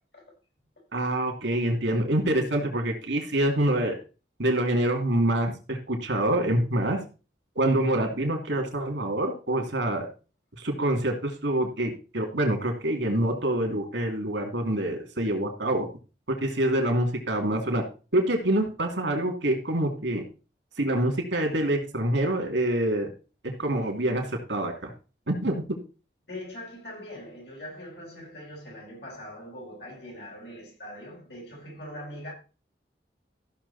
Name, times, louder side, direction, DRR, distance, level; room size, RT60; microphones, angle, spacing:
voice 1, 0.9-3.9 4.4-7.0 7.5-10.1 10.6-15.9 16.3-17.8 18.1-20.2 20.8-23.1 23.4-24.9 25.3-25.6, right 1 dB, 90° right, 3.0 m, -26 dB
voice 2, 26.3-32.3, left 1 dB, 70° left, 5.8 m, -42 dB
15.0 x 6.5 x 4.3 m
head